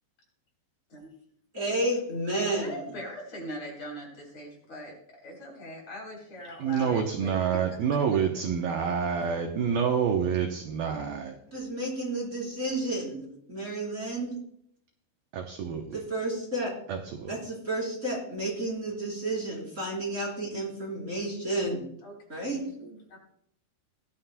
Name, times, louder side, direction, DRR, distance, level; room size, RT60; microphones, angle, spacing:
voice 1, 1.5-2.9 11.5-14.4 15.9-16.7 17.3-21.8 22.3-22.6, right 1 dB, 15° right, -3 dB, 3.8 m, -31 dB
voice 2, 2.4-4.9 5.2-7.4 7.7-7.8 8.1-8.2 22.0-23.2, equal, 40° left, -2 dB, 4.5 m, -41 dB
voice 3, 6.6-11.4 15.3-16.0 16.9-17.4, right 7 dB, 75° right, 3 dB, 2.2 m, -28 dB
19.0 x 11.5 x 2.2 m, 0.70 s
omnidirectional pair, 5.2 m